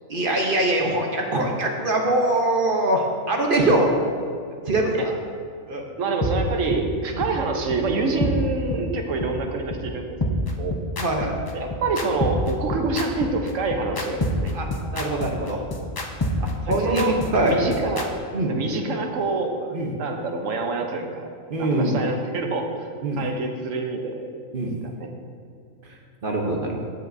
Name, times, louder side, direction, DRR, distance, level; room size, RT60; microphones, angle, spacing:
voice 1, 0.1-3.9 4.7-5.1 5.7-5.8 7.1-7.2 11.0-11.4 14.5-15.6 16.4-17.6 18.3-18.6 19.7-19.9 21.5-22.0 23.0-23.2 24.5-24.8 26.2-26.8, right 1 dB, 45° right, 1 dB, 0.9 m, -23 dB
voice 2, 6.0-10.2 10.6-10.8 11.5-14.5 15.0-15.1 16.7-17.2 17.4-18.1 18.5-21.3 21.6-22.9 23.2-24.3 24.8-25.1, right 3 dB, 70° right, 3 dB, 1.2 m, -26 dB
sound 1, 6.2-6.3 6.7-6.8 7.2-7.3 7.7-7.8 8.2-8.3 8.7-8.8 9.2-9.3 9.7-9.8 10.2-18.1, left 2 dB, 35° left, 0.4 m, -27 dB
15.0 x 5.7 x 2.6 m, 2.3 s
omnidirectional pair, 1.4 m